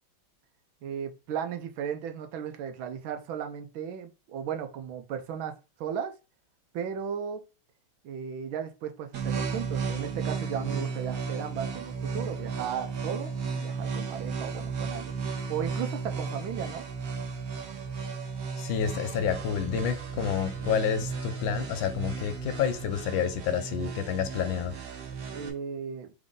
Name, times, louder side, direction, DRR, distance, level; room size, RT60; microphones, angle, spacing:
voice 1, 0.8-6.1 6.7-7.4 8.0-15.1 15.5-16.8 25.3-26.1, right 8 dB, 80° right, 1.5 m, -35 dB
sound 1, 9.1-25.5, right 5 dB, 55° right, 1.3 m, -34 dB
voice 2, 18.6-24.7, left 8 dB, 75° left, 1.4 m, -29 dB
3.8 x 3.7 x 3.7 m
omnidirectional pair, 2.2 m